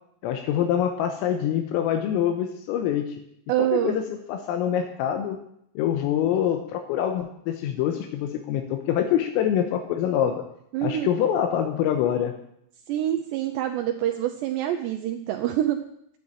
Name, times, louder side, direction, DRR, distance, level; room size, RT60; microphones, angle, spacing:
voice 1, 0.2-3.2 3.6-5.4 5.8-10.5 10.8-12.4, left 10 dB, 85° left, 5 dB, 3.7 m, -25 dB
voice 2, 3.5-4.0 10.7-11.1 12.9-15.8, right 12 dB, 85° right, 5 dB, 2.5 m, -26 dB
11.0 x 9.8 x 8.6 m, 0.73 s
omnidirectional pair, 5.9 m